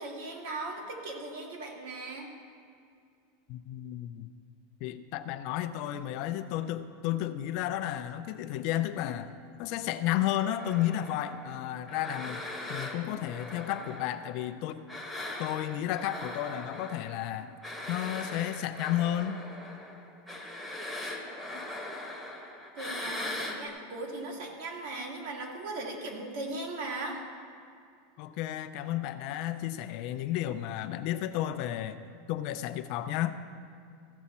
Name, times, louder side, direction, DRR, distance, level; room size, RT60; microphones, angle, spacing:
voice 1, 0.0-2.3 22.8-27.2, right 2 dB, 60° right, 0 dB, 1.9 m, -38 dB
voice 2, 3.5-4.3 4.8-9.3 9.6-12.4 12.7-14.8 15.4-17.5 17.9-19.4 28.2-32.0 32.3-33.4, left 12 dB, 45° left, 10 dB, 0.4 m, -32 dB
sound 1, 10.6-14.5 14.9-23.6, left 1 dB, 5° right, 1.0 m, -40 dB
15.0 x 7.0 x 4.3 m, 2.4 s
supercardioid pair, 160°, 0 cm